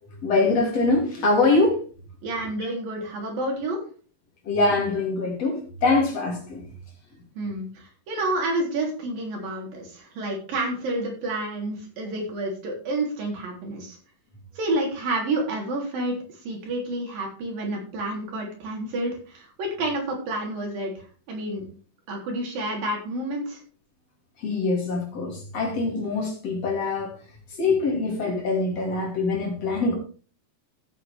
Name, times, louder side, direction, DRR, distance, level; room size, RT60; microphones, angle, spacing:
voice 1, 0.2-1.8 2.6-2.7 4.4-6.7 24.4-27.2 27.5-29.9, left 3 dB, 45° left, 1 dB, 3.9 m, -23 dB
voice 2, 2.2-3.8 7.4-14.0 14.6-16.2 16.4-20.9 21.3-21.6 22.1-23.6, right 2 dB, 75° right, 0 dB, 5.2 m, -29 dB
14.0 x 8.3 x 3.5 m, 0.39 s
omnidirectional pair, 4.1 m